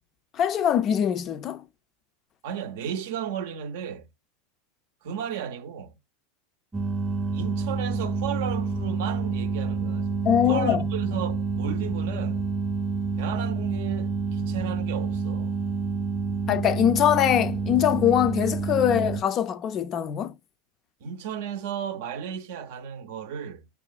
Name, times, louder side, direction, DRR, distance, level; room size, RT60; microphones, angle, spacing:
voice 1, 0.3-1.6 10.3-10.9 16.5-20.4, left 10 dB, 40° left, 0.3 m, -23 dB
voice 2, 2.4-4.1 5.0-6.0 7.3-10.1 10.5-12.4 13.2-15.6 21.0-23.7, right 8 dB, 70° right, 0.5 m, -34 dB
sound 1, 6.7-19.2, right 4 dB, 10° right, 0.5 m, -28 dB
6.3 x 2.4 x 2.3 m
hypercardioid pair, 95°, 0 cm